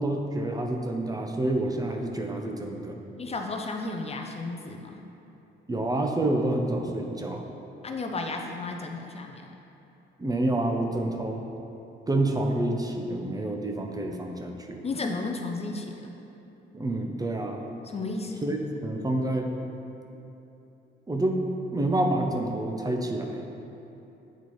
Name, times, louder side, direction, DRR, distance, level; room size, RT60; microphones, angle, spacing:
voice 1, 0.0-3.0 5.7-7.4 10.2-11.5 12.1-14.8 16.7-17.6 18.4-19.5 21.1-23.4, right 1 dB, 20° right, 2 dB, 0.5 m, -28 dB
voice 2, 3.2-5.0 7.8-9.5 14.8-15.9 17.9-18.4, left 3 dB, 30° left, 3 dB, 0.5 m, -33 dB
8.1 x 4.2 x 3.1 m, 3.0 s
cardioid pair, 90°, 20 cm